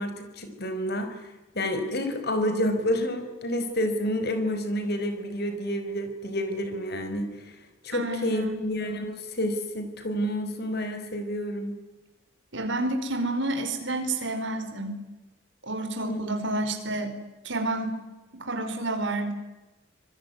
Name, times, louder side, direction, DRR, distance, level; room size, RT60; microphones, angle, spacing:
voice 1, 0.0-7.6 7.8-11.8 16.0-16.4, equal, 50° left, 8 dB, 5.0 m, -29 dB
voice 2, 7.9-8.7 12.5-15.0 15.6-17.2 17.4-18.0 18.3-19.3, right 2 dB, 60° right, 6 dB, 4.8 m, -29 dB
26.0 x 21.5 x 9.7 m, 1.0 s
head